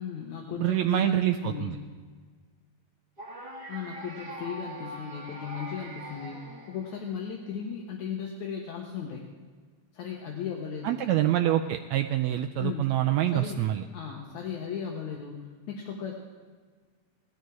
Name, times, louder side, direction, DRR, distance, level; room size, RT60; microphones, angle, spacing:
voice 1, 0.0-1.8 3.7-9.3 9.9-11.1 12.6-13.0 13.3-13.6 13.9-16.2, left 7 dB, 70° left, 0 dB, 2.4 m, -36 dB
voice 2, 0.6-1.8 10.8-13.8, right 12 dB, 85° right, 6 dB, 1.6 m, -26 dB
sound 1, 3.2-7.3, right 1 dB, 25° right, 1.4 m, -42 dB
18.0 x 13.0 x 4.7 m, 1.5 s
omnidirectional pair, 3.6 m